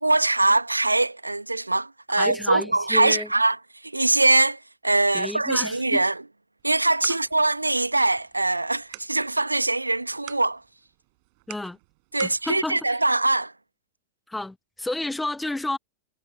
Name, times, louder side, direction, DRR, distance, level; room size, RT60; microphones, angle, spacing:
voice 1, 0.0-6.2 6.6-10.6 12.1-13.5, right 2 dB, 85° right, 1.3 m, -22 dB
voice 2, 2.1-3.3 5.1-6.0 11.5-11.8 12.2-12.8 14.3-15.8, left 2 dB, 5° left, 1.2 m, -31 dB
sound 1, 6.6-12.4, right 33 dB, 45° right, 5.6 m, -46 dB
figure-of-eight pair, 90°, 0 cm